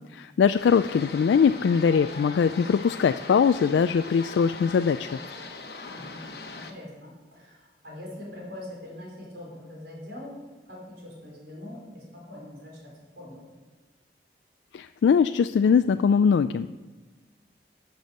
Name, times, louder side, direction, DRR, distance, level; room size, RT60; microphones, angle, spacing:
voice 1, 0.1-5.1 14.7-16.7, left 6 dB, 85° left, 11 dB, 0.3 m, -21 dB
sound 1, 0.6-6.7, left 3 dB, 60° left, 1.1 m, -40 dB
voice 2, 5.9-6.3 6.5-10.3 10.7-12.9 13.2-13.6, left 1 dB, 70° right, -2 dB, 4.5 m, -43 dB
12.5 x 7.0 x 6.5 m, 1.2 s
head